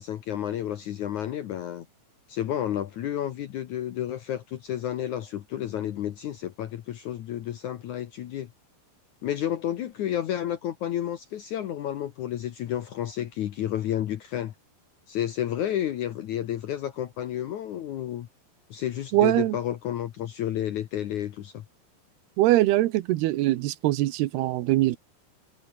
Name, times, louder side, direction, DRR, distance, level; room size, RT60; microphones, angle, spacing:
voice 1, 0.0-1.9 2.3-8.5 9.2-14.5 15.1-18.3 18.7-21.6, left 11 dB, 65° left, 1.9 m, -31 dB
voice 2, 19.1-19.6 22.4-25.0, right 16 dB, 75° right, 2.8 m, -22 dB
omnidirectional pair, 4.8 m